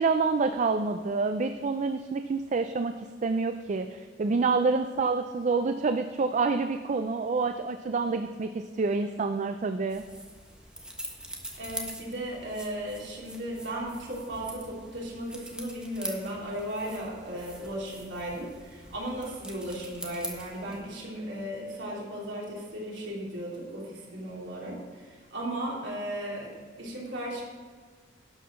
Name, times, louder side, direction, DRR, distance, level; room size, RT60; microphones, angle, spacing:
voice 1, 0.0-10.0, right 4 dB, 40° right, 8 dB, 0.4 m, -27 dB
sound 1, 9.9-20.8, right 1 dB, 5° right, 1.3 m, -44 dB
voice 2, 11.6-24.8 25.1-26.5 26.8-27.4, right 1 dB, 80° right, -4 dB, 3.2 m, -36 dB
11.5 x 5.6 x 6.3 m, 1.5 s
head